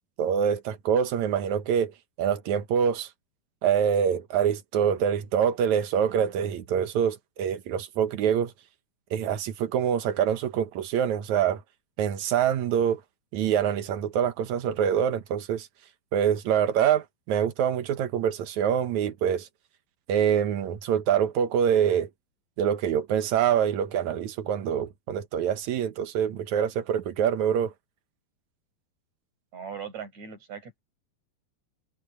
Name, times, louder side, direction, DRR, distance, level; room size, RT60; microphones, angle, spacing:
voice 1, 0.2-1.9 2.2-3.1 3.6-8.5 9.1-11.6 12.0-13.0 13.3-15.7 16.1-19.5 20.1-22.1 22.6-27.7, right 8 dB, 60° right, 2.2 m, -25 dB
voice 2, 29.5-30.8, right 7 dB, 45° right, 8.4 m, -39 dB
omnidirectional pair, 4.4 m